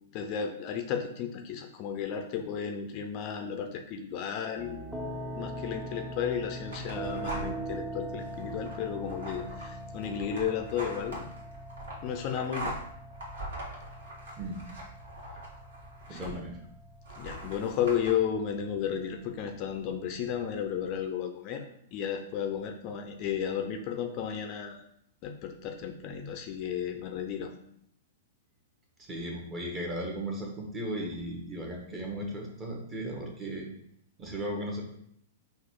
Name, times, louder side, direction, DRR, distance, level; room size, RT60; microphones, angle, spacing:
voice 1, 0.1-4.8 5.3-11.2 12.0-12.7 16.1-16.4 17.2-21.6 21.9-24.8 25.2-27.5, left 8 dB, 40° left, 5 dB, 0.5 m, -33 dB
sound 1, 4.6-21.1, right 1 dB, 5° right, 0.6 m, -42 dB
sound 2, 6.7-7.7 8.2-16.6 17.0-18.1, right 1 dB, 75° right, 1.5 m, -42 dB
voice 2, 16.1-16.6 29.0-33.7 34.2-34.8, right 1 dB, 25° right, -1 dB, 1.2 m, -36 dB
4.0 x 2.5 x 4.5 m, 0.72 s
hypercardioid pair, 115°, 0 cm